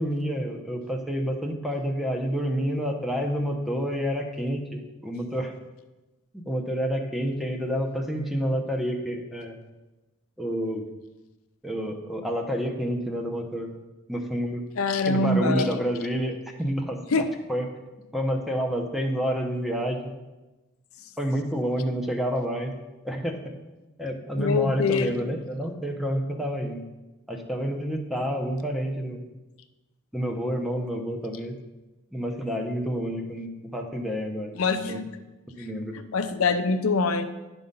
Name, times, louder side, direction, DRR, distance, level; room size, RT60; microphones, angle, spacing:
voice 1, 0.0-5.5 6.3-9.6 10.4-10.8 11.6-13.7 14.1-14.6 15.1-17.0 17.5-17.7 18.1-20.0 21.2-22.7 23.0-23.4 24.0-26.8 27.3-29.2 30.1-31.5 32.1-34.5 34.8-35.1 35.6-36.0, equal, ahead, 2 dB, 0.8 m, -29 dB
voice 2, 14.8-15.7 17.1-17.3 24.4-25.2 34.6-35.0 36.1-37.2, left 3 dB, 80° left, 9 dB, 0.6 m, -24 dB
10.5 x 3.9 x 5.4 m, 1.1 s
head